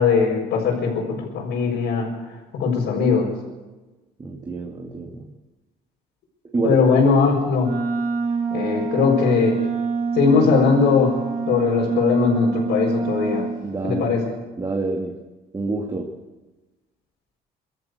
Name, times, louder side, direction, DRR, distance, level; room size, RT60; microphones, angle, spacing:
voice 1, 0.0-2.1 2.5-3.3 6.6-7.7 8.5-9.6 10.1-11.2 11.5-13.5 13.8-14.3, left 5 dB, 75° left, -6 dB, 5.6 m, -19 dB
voice 2, 4.2-5.3 6.5-6.8 13.6-14.1 14.6-15.2 15.5-16.1, right 3 dB, 25° right, 2 dB, 2.2 m, -27 dB
Wind instrument woodwind instrument, 7.6-13.6, right 5 dB, 60° right, 4.1 m, -26 dB
24.5 x 13.5 x 8.3 m, 1.2 s
cardioid pair, 110°, 17 cm